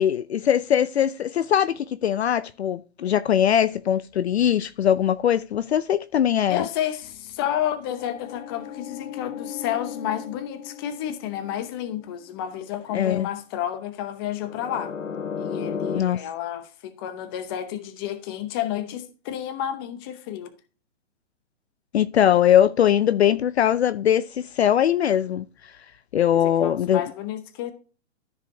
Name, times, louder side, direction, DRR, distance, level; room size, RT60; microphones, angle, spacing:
voice 1, 0.0-6.7 12.9-13.3 15.9-16.2 21.9-25.4 26.1-27.0, left 10 dB, 60° left, 0.6 m, -21 dB
voice 2, 6.5-14.9 15.4-20.5 26.3-27.7, left 11 dB, 20° left, 0.8 m, -31 dB
sound 1, 7.0-11.9 14.4-16.0, left 7 dB, 85° left, 1.2 m, -35 dB
13.5 x 4.9 x 2.7 m
hypercardioid pair, 160°, 38 cm